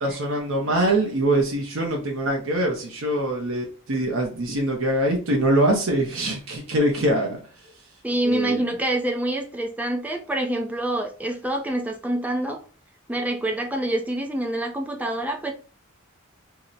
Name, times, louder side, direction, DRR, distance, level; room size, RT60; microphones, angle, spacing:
voice 1, 0.0-7.4 8.2-8.6, right 1 dB, 65° right, 0 dB, 0.6 m, -23 dB
voice 2, 8.0-12.6 13.1-15.5, right 1 dB, 5° right, 2 dB, 0.4 m, -26 dB
2.7 x 2.0 x 3.7 m, 0.40 s
head